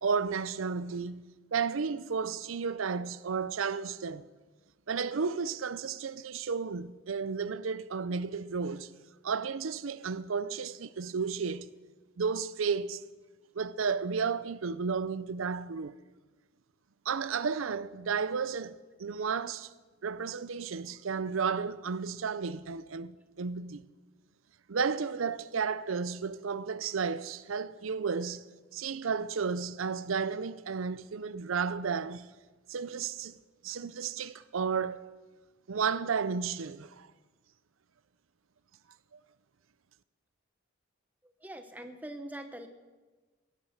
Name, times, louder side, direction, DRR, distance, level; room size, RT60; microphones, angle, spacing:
voice 1, 0.0-4.3 4.9-8.9 9.2-11.7 12.2-13.0 13.5-15.9 17.1-19.7 20.0-23.8 24.7-28.4 28.7-32.3 32.7-33.4 33.6-35.0 35.7-37.1, right 5 dB, 90° right, 0.6 m, -33 dB
voice 2, 41.4-42.7, right 1 dB, 10° right, 1.0 m, -42 dB
17.0 x 10.5 x 6.6 m
head